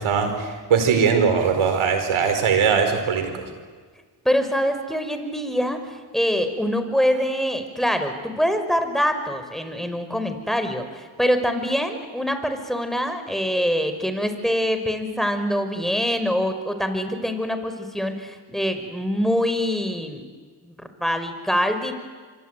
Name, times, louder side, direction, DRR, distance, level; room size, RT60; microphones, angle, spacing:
voice 1, 0.0-3.5, right 6 dB, 80° right, 7 dB, 4.7 m, -20 dB
voice 2, 4.2-20.2 20.6-21.9, equal, ahead, 8 dB, 5.6 m, -24 dB
25.5 x 24.5 x 9.4 m, 1.5 s
supercardioid pair, 40°, 48 cm